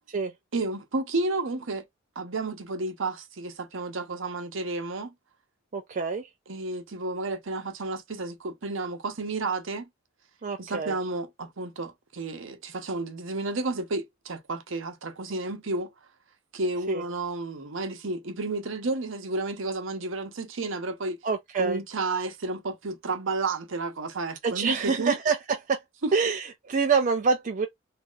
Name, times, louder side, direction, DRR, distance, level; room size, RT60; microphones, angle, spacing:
voice 1, 0.5-1.8 2.2-5.1 6.5-9.8 10.6-15.9 16.5-21.2 21.6-25.1 26.0-26.1, right 2 dB, 70° right, 0.9 m, -31 dB
voice 2, 5.7-6.3 10.4-10.9 16.9-17.0 21.2-21.8 24.4-25.4 25.7-25.8 26.1-27.7, right 5 dB, 40° right, 0.5 m, -26 dB
2.8 x 2.4 x 3.8 m
head